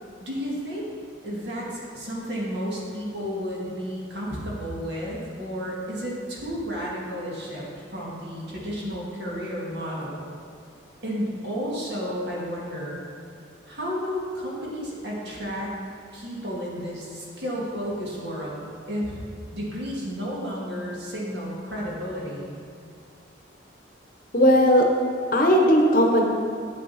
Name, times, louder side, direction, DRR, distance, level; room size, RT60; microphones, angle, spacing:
voice 1, 0.2-0.8 1.2-7.7 7.9-10.2 11.0-13.0 13.7-15.8 16.1-19.2 19.5-22.5, equal, 60° right, -4 dB, 1.9 m, -32 dB
voice 2, 24.3-24.9 25.3-26.2, equal, 45° left, 1 dB, 0.9 m, -17 dB
8.1 x 7.4 x 4.1 m, 2.2 s
head